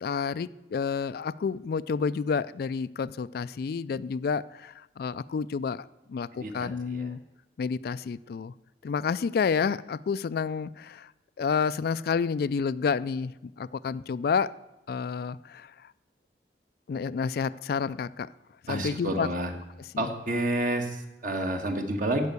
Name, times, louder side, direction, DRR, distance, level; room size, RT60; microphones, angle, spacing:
voice 1, 0.0-7.2 7.6-8.5 8.8-11.1 11.4-14.5 14.9-15.9 16.9-18.3 18.6-19.3 19.9-20.1, left 5 dB, 55° left, 16 dB, 0.3 m, -30 dB
voice 2, 6.3-7.1 18.7-19.5 20.0-22.3, right 1 dB, 50° right, 5 dB, 1.5 m, -30 dB
15.0 x 5.4 x 8.2 m, 0.96 s
head